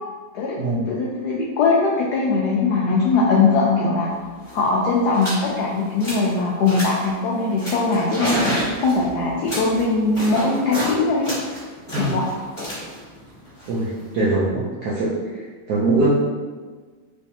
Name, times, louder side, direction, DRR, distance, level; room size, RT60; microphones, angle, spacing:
voice 1, 0.9-4.1 4.5-8.4 8.8-11.3 11.9-12.3, left 3 dB, 85° left, -4 dB, 0.8 m, -20 dB
sound 1, 4.1-4.2 4.4-4.6 5.1-5.4 5.8-6.3 6.6-7.1 7.6-10.9 11.2-14.3, equal, 20° left, 1.0 m, -29 dB
voice 2, 14.1-15.1 15.7-16.1, right 2 dB, 75° right, -7 dB, 0.9 m, -21 dB
3.4 x 3.2 x 2.7 m, 1.4 s
omnidirectional pair, 2.3 m